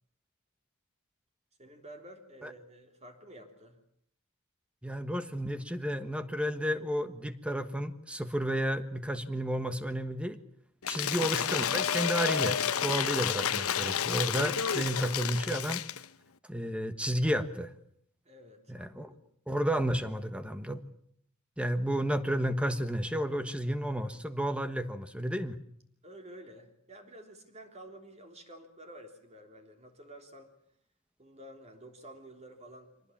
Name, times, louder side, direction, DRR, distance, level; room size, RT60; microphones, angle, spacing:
voice 1, 1.6-3.8 10.9-11.2 18.3-19.2 26.0-30.5 31.2-33.1, right 1 dB, 30° right, 4 dB, 3.5 m, -51 dB
voice 2, 4.8-10.4 10.9-15.8 16.5-17.7 18.7-19.1 19.5-20.8 21.6-25.5, equal, 5° right, 10 dB, 1.4 m, -32 dB
Cheering / Applause / Crowd, 10.8-16.0, left 8 dB, 85° left, 1.0 m, -30 dB
25.0 x 19.0 x 8.7 m, 0.69 s
head